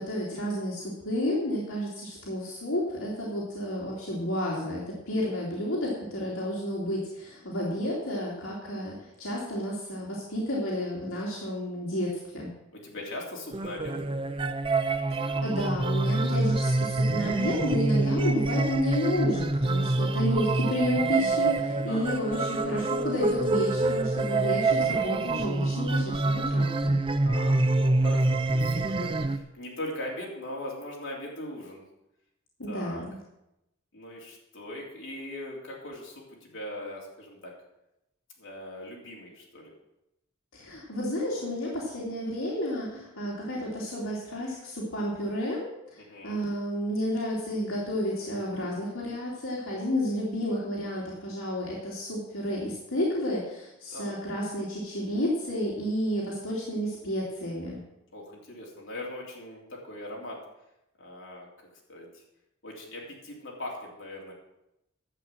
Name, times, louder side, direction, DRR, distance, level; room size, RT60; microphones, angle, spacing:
voice 1, 0.0-12.5 15.1-27.0 32.6-33.1 40.5-57.8, equal, 80° left, -4 dB, 2.7 m, -31 dB
voice 2, 12.7-13.9 16.6-16.9 21.9-22.1 27.2-31.8 32.7-33.0 33.9-37.5 38.4-39.7 46.0-46.4 53.9-54.2 58.1-60.4 61.0-61.5 61.9-62.2 62.6-64.3, left 1 dB, 60° left, -3 dB, 3.4 m, -40 dB
sound 1, 13.5-29.4, right 2 dB, 25° right, 0.5 m, -26 dB
11.0 x 7.4 x 7.5 m, 0.87 s
head